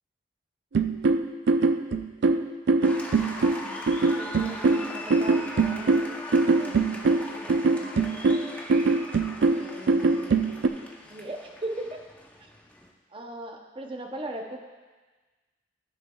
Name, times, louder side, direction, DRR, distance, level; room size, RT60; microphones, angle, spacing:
sound 1, 0.7-10.7, right 3 dB, 75° right, 0.4 m, -23 dB
Applause, 2.8-12.9, left 1 dB, 10° left, 0.7 m, -40 dB
voice 1, 3.2-6.1 6.6-8.1 9.5-10.4 11.1-12.0 12.4-12.5 13.1-14.6, right 1 dB, 30° right, 3 dB, 0.7 m, -40 dB
14.0 x 6.5 x 2.3 m, 1.3 s
head